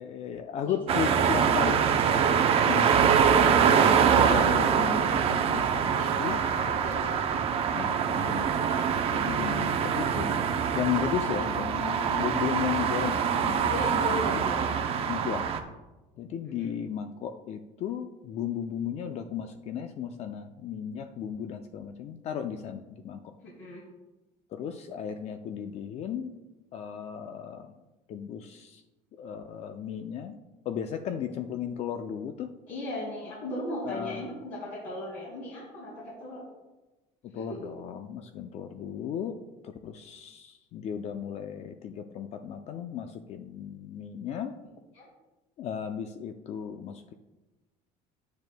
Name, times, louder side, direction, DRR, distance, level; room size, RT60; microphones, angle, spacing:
voice 1, 0.0-1.8 2.6-6.4 7.7-8.5 9.1-14.2 15.1-15.6 16.2-23.3 24.5-26.3 26.7-27.7 28.1-28.8 29.1-30.4 30.6-32.5 33.8-34.3 37.3-39.4 39.6-44.5 45.6-47.1, left 8 dB, 45° left, 7 dB, 0.5 m, -35 dB
voice 2, 0.6-1.2 5.9-7.4 8.2-8.3 13.7-14.7 16.4-16.7 23.4-23.8 32.7-36.4 37.3-37.6 44.9-45.1, left 1 dB, 65° left, -6 dB, 2.5 m, -37 dB
sound 1, 0.9-15.6, right 7 dB, 40° right, 0.7 m, -24 dB
10.0 x 9.4 x 2.2 m, 1.1 s
cardioid pair, 140°, 15 cm